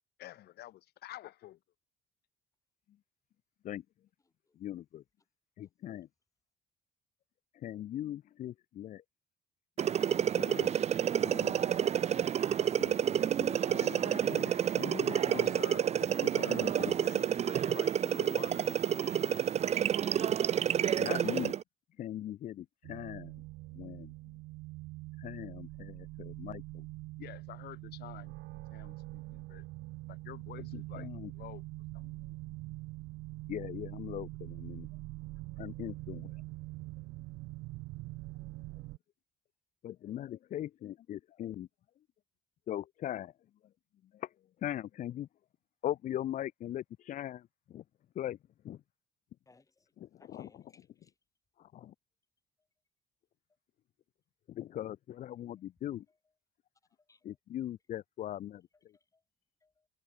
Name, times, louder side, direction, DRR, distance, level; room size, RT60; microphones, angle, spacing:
voice 1, 0.2-1.6 15.2-15.9 16.1-18.7 27.2-29.6 30.1-31.1 31.3-31.6 31.9-32.4, left 14 dB, 75° left, 3.2 m, -49 dB
voice 2, 4.6-5.0 5.6-6.1 7.5-9.0 10.4-10.8 11.3-11.8 12.8-15.6 16.2-16.9 21.0-21.5 22.0-23.3 23.7-24.1 25.2-26.8 30.7-31.3 33.5-34.9 35.6-36.3 39.8-41.7 42.7-43.3 44.1-44.3 44.6-45.3 45.8-47.8 48.2-48.4 48.6-48.8 50.0-50.5 51.6-51.9 54.5-56.1 57.2-58.6, left 12 dB, 50° left, 0.5 m, -40 dB
sound 1, 9.8-21.6, right 9 dB, 40° right, 0.6 m, -29 dB
sound 2, 22.8-39.0, right 21 dB, 90° right, 1.1 m, -44 dB
voice 3, 49.5-49.9 50.2-51.1 56.1-56.2 57.1-57.3 58.9-59.2 59.6-59.9, left 3 dB, 20° left, 3.5 m, -65 dB
cardioid pair, 110°, 17 cm